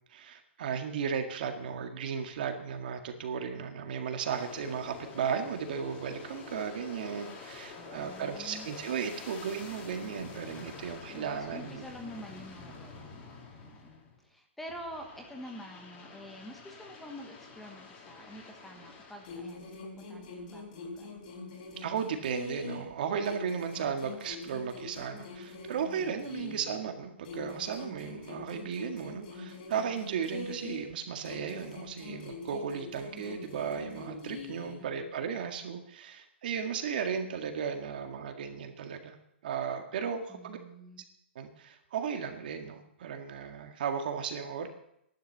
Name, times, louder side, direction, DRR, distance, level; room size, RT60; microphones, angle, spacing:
voice 1, 0.1-11.8 21.8-39.2 39.4-40.6 41.4-44.7, right 7 dB, 50° right, 5 dB, 1.9 m, -35 dB
Aircraft, 4.2-14.2 14.7-19.6, left 4 dB, 25° left, 2.5 m, -48 dB
voice 2, 7.8-8.7 11.1-13.2 13.6-21.1 26.4-26.7 34.8-35.1 40.3-41.0, equal, 5° left, 2 dB, 1.2 m, -47 dB
sound 1, 19.2-22.9 23.2-26.9 27.2-30.9 31.2-34.9, left 3 dB, 45° left, 3.9 m, -44 dB
13.0 x 11.5 x 6.7 m, 0.77 s
hypercardioid pair, 165°, 6 cm